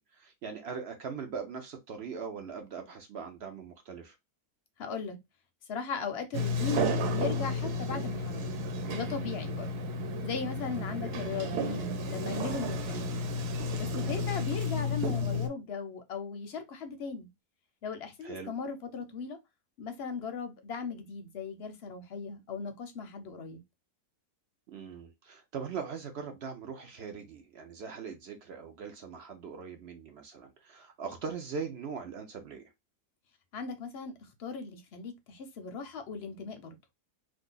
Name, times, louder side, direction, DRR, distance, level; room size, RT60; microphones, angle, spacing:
voice 1, 0.0-4.2 11.0-11.1 18.2-18.5 24.7-32.6, right 6 dB, 60° right, 0.6 m, -41 dB
voice 2, 4.8-5.2 5.7-6.9 7.1-8.5 8.9-9.7 10.2-13.2 13.8-17.3 17.8-19.4 19.8-23.6 33.5-36.8, left 5 dB, 60° left, 0.7 m, -38 dB
Sliding door, 6.3-15.5, left 1 dB, 85° right, 1.2 m, -32 dB
2.6 x 2.4 x 3.7 m
omnidirectional pair, 1.7 m